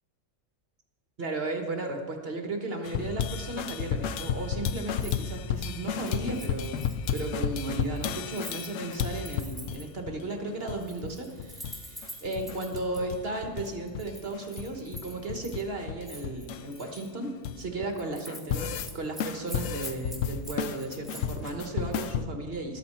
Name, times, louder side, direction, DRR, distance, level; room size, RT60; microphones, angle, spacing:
voice 1, 1.2-6.9 7.1-22.8, right 2 dB, 50° right, 4 dB, 1.4 m, -35 dB
sound 1, 2.8-9.8 10.1-10.2 10.4-11.1 11.4-11.8 12.0-13.7 13.9-17.9 18.3-18.9 19.2-22.2, left 8 dB, 70° left, 0.9 m, -33 dB
Keys jangling, 4.9-5.2 5.5-10.0 10.7-13.0 13.7-15.6 16.1-17.1 17.5-17.6 17.9-18.6 18.8-21.5 21.9-22.1, equal, ahead, 2.6 m, -46 dB
13.0 x 13.0 x 4.3 m, 1.5 s
omnidirectional pair, 1.4 m